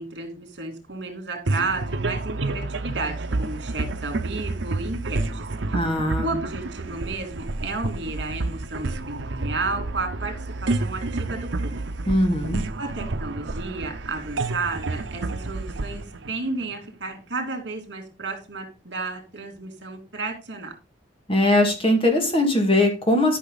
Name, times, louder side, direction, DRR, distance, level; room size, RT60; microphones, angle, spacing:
voice 1, 0.0-5.4 5.7-5.9 6.2-11.8 12.8-20.7, right 3 dB, 65° right, 4 dB, 3.1 m, -32 dB
sound 1, 1.5-17.1, right 2 dB, 80° right, 0.8 m, -29 dB
voice 2, 5.7-6.3 12.1-12.6 21.3-23.4, left 1 dB, 30° left, 3 dB, 2.2 m, -20 dB
12.0 x 6.0 x 4.1 m, 0.31 s
head